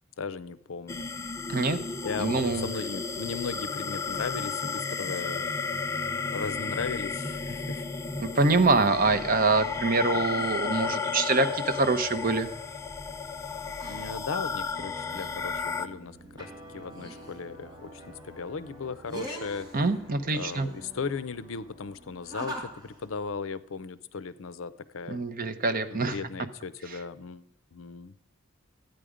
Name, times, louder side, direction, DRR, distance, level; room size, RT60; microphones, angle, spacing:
voice 1, 0.2-1.1 2.0-5.5 6.3-7.9 13.9-19.7 20.3-25.2 25.9-27.5 27.7-28.1, left 5 dB, 70° left, 15 dB, 0.5 m, -37 dB
sound 1, 0.9-15.9, left 4 dB, 15° left, 0.4 m, -33 dB
voice 2, 2.2-2.7 8.2-12.5 19.7-20.7 25.1-26.2 26.9-27.0, right 3 dB, 40° right, 10 dB, 0.8 m, -25 dB
sound 2, 11.5-23.4, right 1 dB, 20° right, 2.1 m, -45 dB
12.5 x 9.1 x 5.0 m, 0.82 s
head